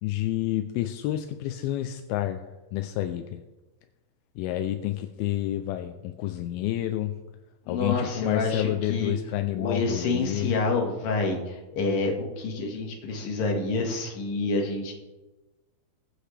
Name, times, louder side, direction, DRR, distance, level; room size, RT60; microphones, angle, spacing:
voice 1, 0.0-3.4 4.4-7.2 7.7-10.5, left 14 dB, 85° left, 8 dB, 2.5 m, -29 dB
voice 2, 7.7-9.1 9.5-14.9, left 3 dB, 70° left, 1 dB, 3.5 m, -28 dB
22.0 x 7.9 x 3.3 m, 1.1 s
omnidirectional pair, 4.3 m